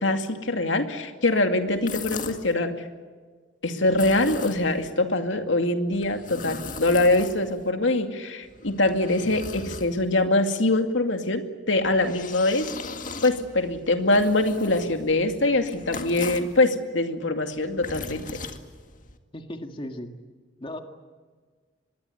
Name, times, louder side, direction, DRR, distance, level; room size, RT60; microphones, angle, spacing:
voice 1, 0.0-2.7 3.6-12.7 13.2-18.4, left 2 dB, 85° left, 6 dB, 2.4 m, -23 dB
sound 1, 1.7-2.5 3.8-4.9 5.9-7.7 8.4-10.3 11.7-16.6 17.5-19.2, left 4 dB, 45° left, 2.0 m, -39 dB
voice 2, 19.3-20.1 20.6-20.8, left 1 dB, 30° left, 5 dB, 1.9 m, -36 dB
25.5 x 21.5 x 8.1 m, 1.5 s
head